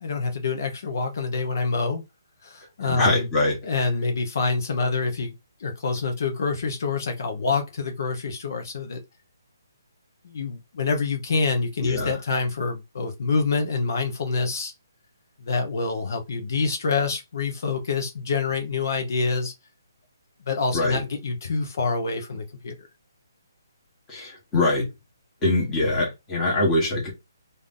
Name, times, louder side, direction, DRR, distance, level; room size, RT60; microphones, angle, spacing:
voice 1, 0.0-2.0 2.4-3.3 3.6-5.3 5.6-9.0 10.2-14.7 15.4-19.5 20.5-22.7, left 4 dB, 55° left, 0.8 m, -26 dB
voice 2, 2.9-3.6 11.8-12.2 20.7-21.0 24.1-24.9 25.4-27.1, left 2 dB, 10° left, 1.4 m, -23 dB
3.3 x 2.7 x 3.7 m
hypercardioid pair, 165°, 2 cm